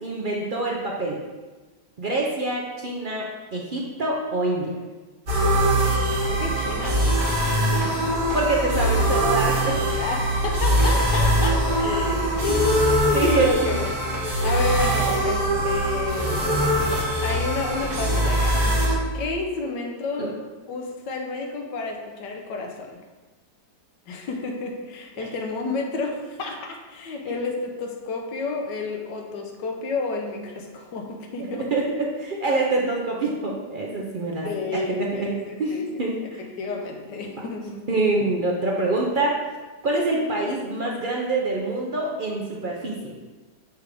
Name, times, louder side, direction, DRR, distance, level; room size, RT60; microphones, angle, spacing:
voice 1, 0.0-1.2 2.0-4.7 8.3-9.8 13.1-13.8 20.2-20.3 25.2-25.3 31.4-34.5 34.7-35.3 35.6-36.4 37.9-39.4 39.8-43.1, right 2 dB, 70° right, -2 dB, 0.4 m, -25 dB
sound 1, 5.3-19.0, right 1 dB, 55° right, 1.8 m, -22 dB
voice 2, 6.3-7.2 10.0-13.9 14.4-16.5 17.2-18.6 19.1-20.3 20.7-23.0 24.1-31.8 34.4-37.9, left 3 dB, 85° left, 2 dB, 1.5 m, -30 dB
6.3 x 3.4 x 4.9 m, 1.2 s
omnidirectional pair, 1.8 m